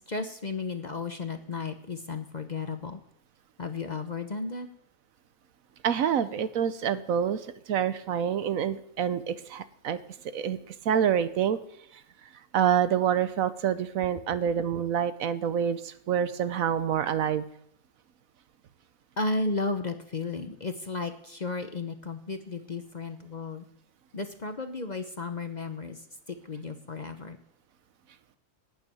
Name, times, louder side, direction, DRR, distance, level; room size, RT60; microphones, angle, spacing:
voice 1, 0.0-3.0 3.6-4.7 19.2-23.6 24.1-26.0 26.3-27.4, left 3 dB, 35° left, 7 dB, 0.8 m, -34 dB
voice 2, 5.8-7.4 7.7-10.0 10.3-11.6 12.5-17.4, right 8 dB, 70° right, 13 dB, 1.1 m, -27 dB
12.0 x 7.0 x 9.2 m, 0.71 s
omnidirectional pair, 1.5 m